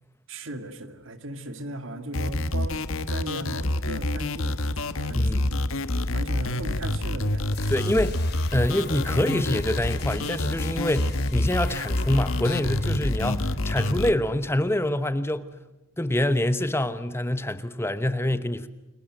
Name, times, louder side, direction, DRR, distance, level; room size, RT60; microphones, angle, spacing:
voice 1, 0.3-5.7 6.1-7.7, right 1 dB, 65° right, 2.3 m, -37 dB
sound 1, 2.1-14.1, left 1 dB, 75° left, 1.4 m, -27 dB
voice 2, 5.1-5.5 7.7-8.2 8.5-15.5 16.0-18.7, left 1 dB, 10° left, 0.9 m, -26 dB
sound 2, 7.5-15.1, left 2 dB, 50° left, 4.0 m, -41 dB
29.5 x 22.0 x 7.8 m
head